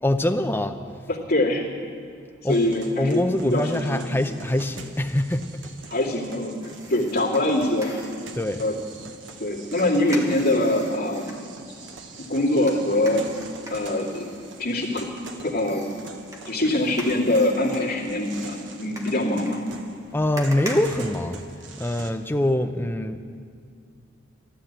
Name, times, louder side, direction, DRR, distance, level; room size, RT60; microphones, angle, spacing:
voice 1, 0.0-0.8 2.4-2.6 3.0-5.5 8.3-8.6 20.1-21.4 21.8-23.2, left 1 dB, 10° left, 6 dB, 0.6 m, -24 dB
voice 2, 1.1-1.7 2.4-4.0 5.9-8.0 8.6-8.7 9.4-11.4 12.3-13.3 13.7-14.3 14.6-15.1 15.4-15.8 16.5-19.6, left 1 dB, 50° left, -3 dB, 2.4 m, -23 dB
sound 1, 2.5-22.1, right 3 dB, 65° right, 1.2 m, -44 dB
sound 2, 6.6-8.4 9.8-11.4 12.7-15.2 15.6-21.9 22.2-22.3, right 1 dB, 15° right, 1.4 m, -42 dB
14.0 x 12.0 x 8.2 m, 2.3 s
head